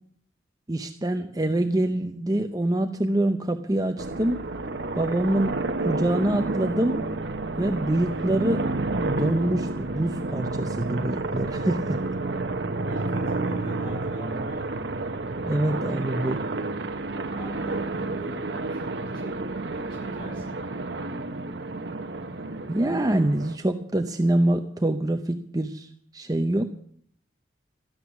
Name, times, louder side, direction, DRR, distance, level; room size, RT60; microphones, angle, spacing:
voice 1, 0.7-4.4 4.9-5.6 5.8-7.0 7.6-8.6 9.0-12.0 15.4-16.4 22.7-26.8, right 1 dB, 20° right, 6 dB, 0.6 m, -25 dB
sound 1, 4.0-23.6, right 2 dB, 65° right, 0.9 m, -30 dB
voice 2, 12.9-14.8 17.3-20.6, equal, 25° left, -3 dB, 7.7 m, -43 dB
13.5 x 10.5 x 7.0 m, 0.64 s
head